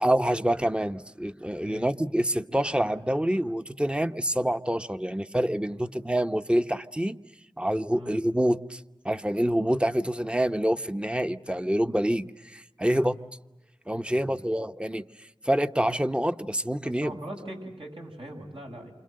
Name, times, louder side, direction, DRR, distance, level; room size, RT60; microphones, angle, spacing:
voice 1, 0.0-7.2 7.6-13.1 13.9-15.0 15.4-17.1, equal, 10° right, 10 dB, 1.0 m, -26 dB
voice 2, 14.1-14.5 16.8-18.9, right 1 dB, 70° right, 1 dB, 7.5 m, -41 dB
28.5 x 26.0 x 7.7 m, 1.0 s
wide cardioid pair, 45°, 10 cm